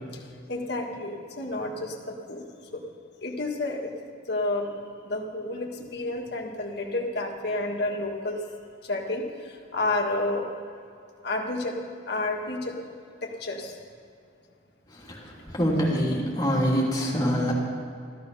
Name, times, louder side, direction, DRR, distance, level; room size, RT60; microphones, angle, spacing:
voice 1, 0.5-2.4 2.7-2.8 3.2-3.9 4.3-4.7 5.0-8.4 8.9-9.3 9.7-10.4 11.2-11.8 12.1-12.8 13.2-13.7, left 2 dB, 65° left, 1 dB, 1.7 m, -30 dB
voice 2, 14.9-17.5, equal, 20° left, -4 dB, 3.0 m, -25 dB
14.0 x 13.0 x 5.5 m, 2.4 s
head